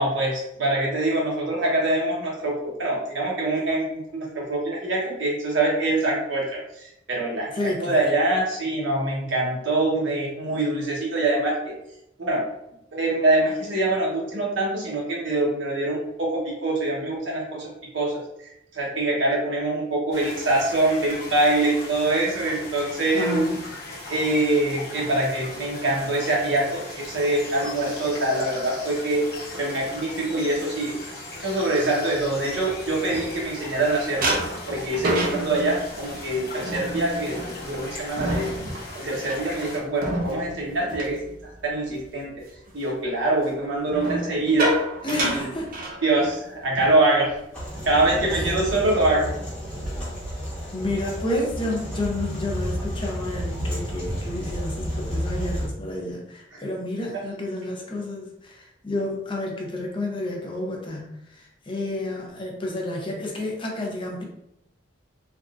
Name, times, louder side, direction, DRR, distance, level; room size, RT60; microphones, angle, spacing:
voice 1, 0.0-11.5 12.2-12.4 12.9-23.4 24.1-29.2 29.5-31.0 31.4-34.3 34.7-38.5 38.9-41.2 41.6-42.3 42.7-44.7 45.1-45.4 46.0-47.3 47.8-49.3 56.5-56.6, right 2 dB, 85° right, -3 dB, 1.0 m, -24 dB
voice 2, 7.6-8.1 23.1-23.6 45.0-45.7 50.7-64.2, left 1 dB, 30° left, -1 dB, 0.6 m, -30 dB
sound 1, 20.1-39.8, left 2 dB, 55° left, 1.0 m, -38 dB
sound 2, 32.3-33.8 34.2-42.0 42.4-42.7 43.9-46.5 46.8-47.0 47.3-47.6 48.1-48.7, right 1 dB, 50° right, 0.6 m, -30 dB
sound 3, 47.5-55.7, equal, 5° left, 1.1 m, -31 dB
3.4 x 2.5 x 2.4 m, 0.81 s
head